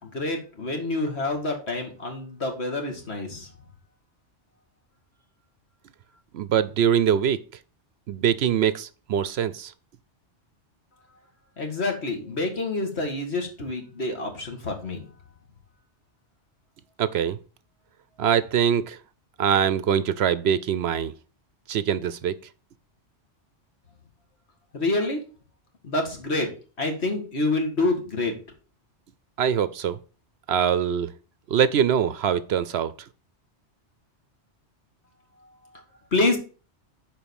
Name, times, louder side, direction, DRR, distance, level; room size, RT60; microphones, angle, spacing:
voice 1, 0.0-3.5 11.6-15.0 24.7-25.2 25.8-26.5 26.8-28.4 36.1-36.4, left 2 dB, 60° left, 2.3 m, -27 dB
voice 2, 6.3-7.4 8.1-9.7 17.0-17.4 18.2-19.0 19.4-21.1 21.7-22.3 29.4-30.0 30.5-31.1 31.5-32.9, right 8 dB, 65° right, 0.8 m, -23 dB
7.1 x 4.9 x 6.9 m
omnidirectional pair, 1.2 m